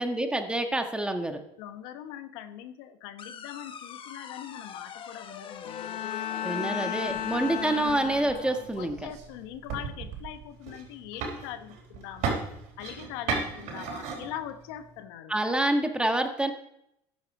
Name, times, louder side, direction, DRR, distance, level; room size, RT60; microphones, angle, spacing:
voice 1, 0.0-1.4 6.4-9.0 15.3-16.5, right 1 dB, 5° right, 6 dB, 1.6 m, -27 dB
voice 2, 1.6-7.1 8.8-12.4 12.8-15.3, left 11 dB, 90° left, 10 dB, 1.1 m, -42 dB
sound 1, 3.2-8.2, left 7 dB, 40° left, 1.1 m, -42 dB
Bowed string instrument, 5.6-8.8, left 10 dB, 65° left, 1.5 m, -34 dB
sound 2, 7.1-15.0, right 5 dB, 70° right, 4.2 m, -37 dB
13.5 x 9.9 x 4.9 m, 0.76 s
supercardioid pair, 110°, 13 cm